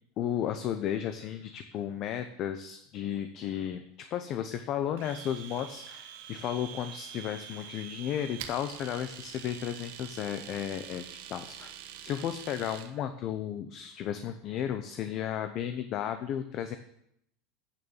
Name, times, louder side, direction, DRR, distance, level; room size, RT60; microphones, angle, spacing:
voice 1, 0.2-11.7 12.0-16.8, left 10 dB, 45° left, 8 dB, 0.7 m, -34 dB
Domestic sounds home sounds, 5.0-12.9, right 10 dB, 70° right, 1.1 m, -45 dB
8.5 x 6.5 x 7.2 m, 0.75 s
supercardioid pair, 120°, 0 cm